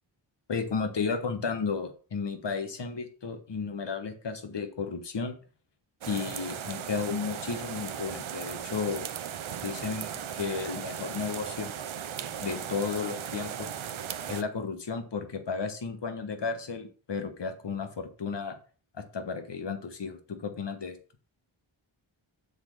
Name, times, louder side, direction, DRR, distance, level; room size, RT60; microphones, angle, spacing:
voice 1, 0.5-5.3 6.0-9.1 9.6-11.7 12.4-13.7 14.3-18.6 18.9-21.0, left 5 dB, 60° left, 7 dB, 1.4 m, -33 dB
sound 1, 6.0-14.4, right 8 dB, 90° right, 0.7 m, -37 dB
7.0 x 4.0 x 6.6 m, 0.40 s
wide cardioid pair, 70°, 47 cm